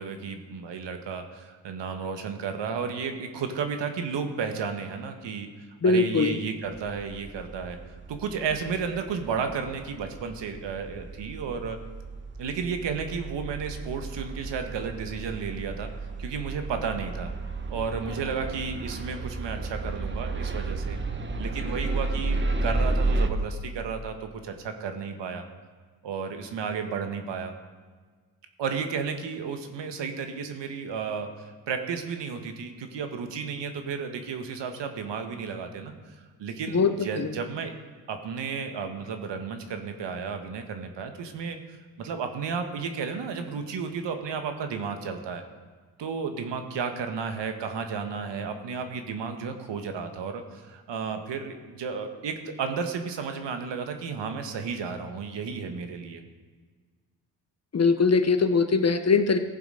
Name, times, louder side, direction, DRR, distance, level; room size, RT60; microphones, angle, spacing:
voice 1, 0.0-5.5 5.8-7.8 8.1-11.8 12.4-15.9 16.2-17.3 17.7-21.0 21.4-25.4 26.0-27.5 28.6-37.7 38.1-41.6 42.0-45.4 46.0-56.2, right 5 dB, 60° right, 6 dB, 1.6 m, -33 dB
voice 2, 5.8-6.4 36.7-36.9 37.2-37.3 57.7-59.4, left 4 dB, 30° left, 8 dB, 1.2 m, -21 dB
sound 1, 6.8-23.3, right 3 dB, 25° right, 1.2 m, -32 dB
15.5 x 7.1 x 5.1 m, 1.5 s
hypercardioid pair, 50°, 48 cm